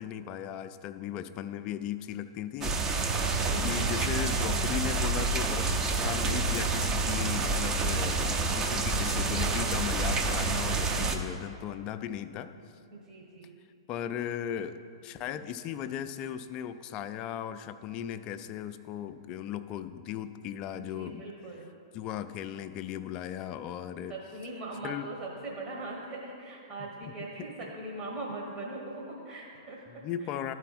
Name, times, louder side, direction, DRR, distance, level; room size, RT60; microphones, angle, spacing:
voice 1, 0.0-3.3 3.6-8.3 8.6-12.5 13.9-14.8 15.0-21.3 21.9-24.1 24.8-25.1 27.6-27.7 29.9-30.5, left 10 dB, 35° left, 11 dB, 0.3 m, -37 dB
sound 1, 2.6-11.2, right 3 dB, 20° right, 0.5 m, -28 dB
voice 2, 3.4-3.7 9.2-9.7 12.9-13.5 20.7-21.7 24.1-30.4, right 2 dB, 40° right, -2 dB, 1.3 m, -41 dB
12.0 x 4.3 x 4.2 m, 2.5 s
figure-of-eight pair, 110°, 3 cm